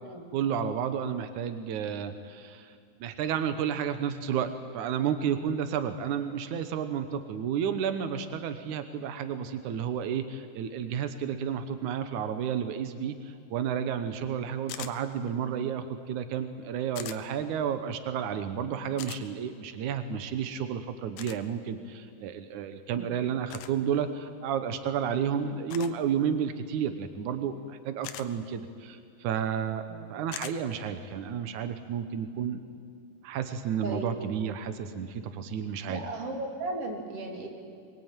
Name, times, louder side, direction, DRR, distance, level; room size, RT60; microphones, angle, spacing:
voice 1, 0.3-4.5 4.7-29.8 30.1-32.6 33.2-36.0, right 8 dB, 90° right, 9 dB, 1.7 m, -31 dB
sound 1, 14.7-15.0 17.0-17.2 19.0-19.2 21.2-21.4 23.5-23.7 25.7-26.0 28.0-28.3 30.3-30.6, left 12 dB, 75° left, 2.9 m, -40 dB
voice 2, 33.8-34.2 35.9-37.5, right 2 dB, 35° right, 1 dB, 3.6 m, -36 dB
23.5 x 22.5 x 9.0 m, 2.3 s
omnidirectional pair, 5.1 m